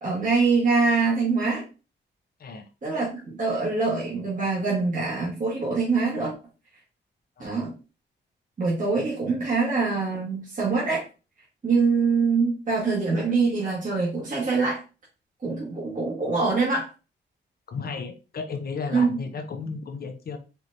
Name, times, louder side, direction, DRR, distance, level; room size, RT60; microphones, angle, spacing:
voice 1, 0.0-1.6 2.8-6.3 7.4-7.7 8.6-11.0 11.6-14.8 15.4-16.9 18.9-19.1, right 4 dB, 45° right, 1.6 m, -24 dB
voice 2, 17.7-20.4, left 4 dB, 55° left, 0.8 m, -34 dB
4.5 x 3.0 x 2.6 m
cardioid pair, 105°, 19 cm